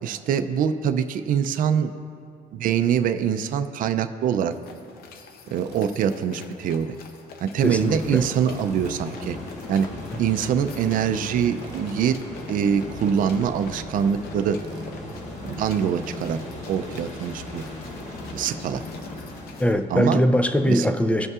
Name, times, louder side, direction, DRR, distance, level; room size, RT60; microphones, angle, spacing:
voice 1, 0.0-1.9 2.5-4.5 5.5-6.9 7.4-9.4 9.7-9.9 10.2-12.2 12.5-14.6 15.5-16.4 16.7-17.6 18.3-18.8 19.9-20.2 20.7-20.9, right 8 dB, 55° right, 10 dB, 0.4 m, -24 dB
sound 1, 4.5-19.7, left 5 dB, 65° left, 0.7 m, -47 dB
Tools, 5.6-5.8 8.5-8.9 11.6-11.9 14.6-14.9, right 5 dB, 85° right, 0.8 m, -46 dB
sound 2, 7.6-19.8, left 1 dB, 45° left, 1.0 m, -37 dB
voice 2, 7.6-8.2 19.6-21.3, equal, 10° left, 8 dB, 0.4 m, -21 dB
16.0 x 5.3 x 2.4 m, 2.3 s
cardioid pair, 110°, 17 cm